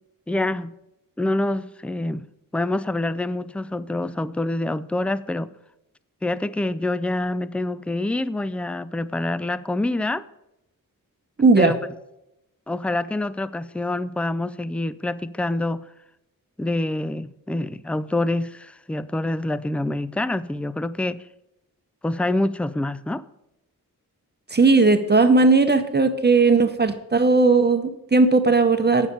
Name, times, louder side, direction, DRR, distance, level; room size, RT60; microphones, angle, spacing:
voice 1, 0.3-0.7 1.2-2.3 2.5-5.5 6.2-10.3 11.6-11.8 12.7-15.8 16.6-21.2 22.0-23.2, left 2 dB, 5° left, 0.3 m, -26 dB
voice 2, 11.4-11.7 24.5-29.1, right 3 dB, 30° right, 0.8 m, -17 dB
9.0 x 7.2 x 6.7 m
wide cardioid pair, 110°, 35 cm